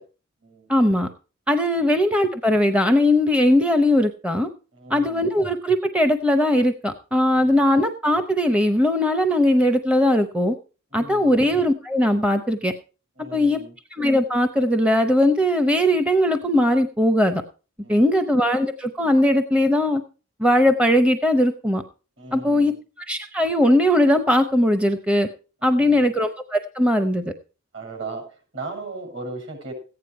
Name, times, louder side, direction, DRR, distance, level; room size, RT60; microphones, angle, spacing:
voice 1, 0.7-1.1 1.5-4.5 4.9-10.5 10.9-12.7 13.3-13.6 13.9-17.4 17.9-20.0 20.4-21.8 22.3-22.7 23.0-25.3 25.6-27.2, left 1 dB, 5° right, 8 dB, 0.6 m, -19 dB
voice 2, 4.7-5.3 7.5-7.6 10.9-11.3 13.2-13.7 17.8-18.1 22.2-22.8 25.6-26.1 27.7-28.2 28.5-29.7, right 3 dB, 60° right, 5 dB, 6.8 m, -37 dB
15.0 x 9.5 x 4.6 m, 0.35 s
head